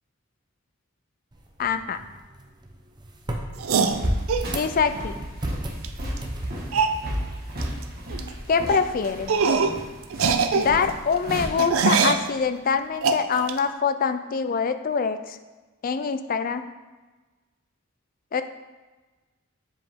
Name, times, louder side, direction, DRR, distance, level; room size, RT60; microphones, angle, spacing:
sound 1, 1.3-8.3, right 1 dB, 20° right, 0.7 m, -37 dB
voice 1, 1.6-2.0 4.5-5.2 8.5-9.3 10.5-15.4 15.8-16.7 18.3-18.4, left 6 dB, 40° left, 10 dB, 0.4 m, -24 dB
sound 2, 3.6-4.5 5.8-5.9 6.2-6.3 6.7-7.0 7.6-7.8 8.1-8.3 8.7-8.8 9.3-9.8 10.1-12.3 13.0-13.6, right 5 dB, 80° right, 0.5 m, -23 dB
sound 3, 3.9-11.4, equal, 45° right, 1.4 m, -33 dB
7.5 x 5.1 x 3.6 m, 1.2 s
head